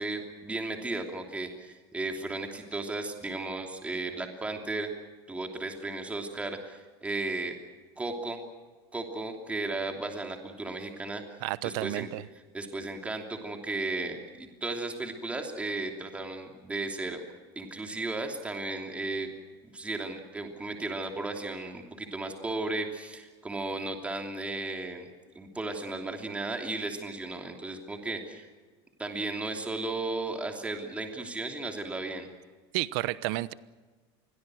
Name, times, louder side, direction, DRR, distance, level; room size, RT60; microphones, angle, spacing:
voice 1, 0.0-4.9 5.3-7.5 8.0-8.4 8.9-11.2 11.6-12.1 12.5-17.2 17.5-19.3 19.7-25.1 25.3-28.5 29.0-32.3, right 2 dB, 10° right, 3 dB, 3.0 m, -35 dB
voice 2, 11.4-12.2 32.7-33.5, right 18 dB, 65° right, 17 dB, 1.0 m, -31 dB
28.0 x 22.5 x 6.4 m, 1.4 s
supercardioid pair, 155°, 13 cm